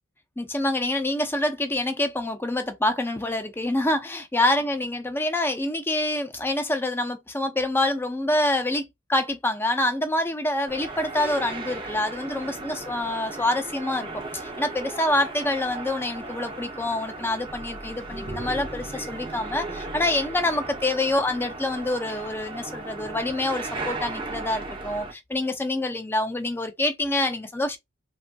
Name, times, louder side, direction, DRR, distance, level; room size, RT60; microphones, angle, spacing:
voice 1, 0.4-27.8, left 1 dB, 10° left, 0.6 m, -26 dB
sound 1, 10.7-25.1, right 2 dB, 25° right, 0.7 m, -36 dB
3.3 x 2.5 x 2.2 m
head